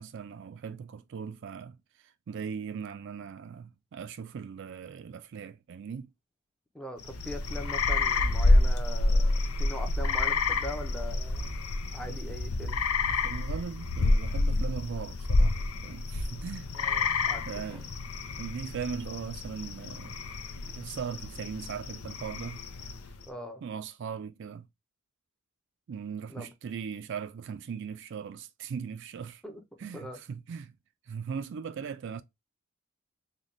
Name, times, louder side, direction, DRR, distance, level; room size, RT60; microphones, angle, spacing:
voice 1, 0.0-1.8 2.0-6.1 12.1-12.2 13.1-16.7 17.5-17.9 18.4-20.2 20.6-22.6 23.6-24.7 25.9-29.4 29.8-30.7 31.1-32.2, right 6 dB, 55° right, 0.3 m, -39 dB
voice 2, 6.7-11.6 11.9-12.8 16.7-17.8 23.3-23.6 26.3-26.5 29.4-29.6 29.9-30.2, left 1 dB, 5° left, 0.6 m, -41 dB
sound 1, 7.0-23.2, left 2 dB, 80° left, 0.6 m, -28 dB
4.0 x 2.2 x 3.0 m
head